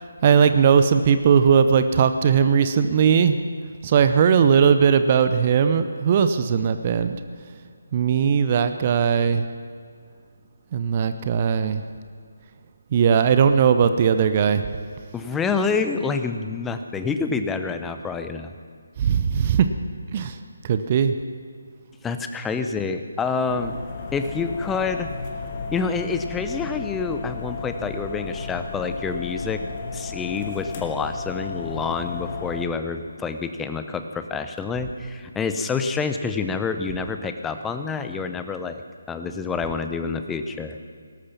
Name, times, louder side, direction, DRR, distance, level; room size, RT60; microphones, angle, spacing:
voice 1, 0.2-3.4 3.8-7.2 7.9-9.4 10.7-11.8 12.9-14.7 19.0-19.7 20.1-20.3 20.6-21.1, right 7 dB, 30° right, 10 dB, 0.6 m, -18 dB
voice 2, 15.1-18.5 22.0-23.8 24.1-25.1 25.7-29.6 29.9-38.8 39.1-40.8, left 5 dB, 10° left, 8 dB, 0.7 m, -27 dB
sound 1, 23.5-32.7, left 4 dB, 25° left, 1.7 m, -33 dB
18.0 x 13.0 x 5.9 m, 2.1 s
figure-of-eight pair, 150°, 0 cm